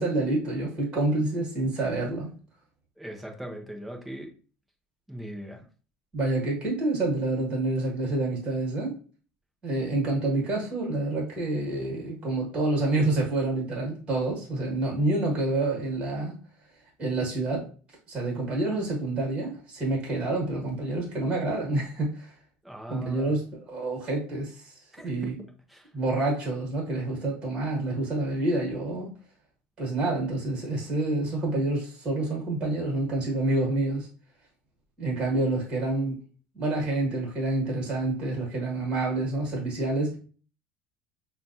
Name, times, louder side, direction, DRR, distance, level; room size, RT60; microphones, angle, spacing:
voice 1, 0.0-2.3 6.1-8.9 9.6-16.4 17.0-17.7 18.1-22.3 22.9-24.7 25.0-25.3 25.9-29.1 29.8-34.1 35.0-36.2 36.5-40.2, right 2 dB, 25° right, -2 dB, 1.6 m, -28 dB
voice 2, 3.0-4.3 5.1-5.6 22.6-23.3 24.9-25.3 25.7-25.9, right 1 dB, 5° right, 1 dB, 0.6 m, -39 dB
5.7 x 2.3 x 2.6 m, 0.39 s
cardioid pair, 160°, 4 cm